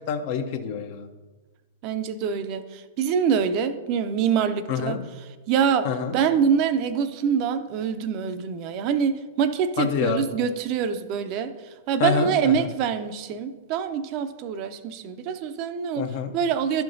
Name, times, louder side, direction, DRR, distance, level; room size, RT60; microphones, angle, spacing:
voice 1, 0.1-1.1 4.7-5.0 5.8-6.1 9.8-10.3 12.0-12.7 16.0-16.3, left 6 dB, 50° left, 7 dB, 0.8 m, -26 dB
voice 2, 1.8-5.0 5.5-5.9 6.1-11.5 11.9-16.1 16.3-16.8, right 7 dB, 45° right, 11 dB, 0.6 m, -25 dB
12.0 x 5.8 x 2.6 m, 1.3 s
hypercardioid pair, 110°, 0 cm